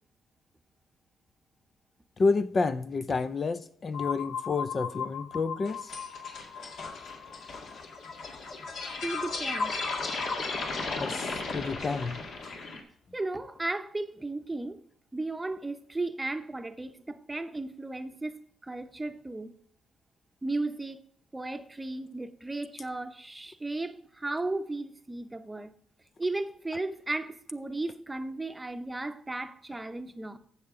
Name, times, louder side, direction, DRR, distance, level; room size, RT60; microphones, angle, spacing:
voice 1, 2.2-5.8 11.0-12.2, left 4 dB, 35° left, 0.5 m, -29 dB
sound 1, 3.9-9.6, left 7 dB, 85° left, 0.8 m, -39 dB
sound 2, 5.7-12.8, left 3 dB, 65° left, 2.1 m, -35 dB
voice 2, 9.0-9.8 13.1-14.8 15.1-19.5 20.4-21.0 21.3-25.7 26.2-30.4, right 2 dB, 15° right, 0.8 m, -35 dB
15.0 x 5.7 x 3.7 m
cardioid pair, 90°, 0 cm